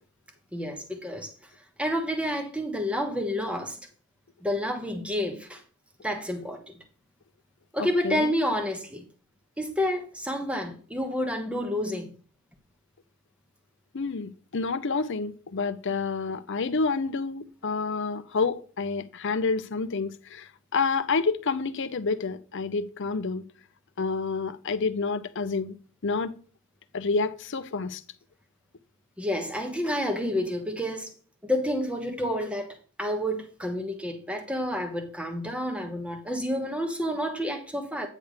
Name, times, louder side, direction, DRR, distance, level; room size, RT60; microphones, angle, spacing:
voice 1, 0.5-1.3 1.8-3.8 4.4-5.6 6.0-6.6 7.7-9.0 9.6-12.1 29.2-31.1 31.4-32.7 33.0-38.1, equal, 5° right, 1.2 m, -29 dB
voice 2, 7.8-8.3 13.9-23.4 24.0-25.8 26.0-26.3 26.9-28.0, left 4 dB, 60° left, 0.7 m, -29 dB
9.3 x 3.5 x 6.5 m
head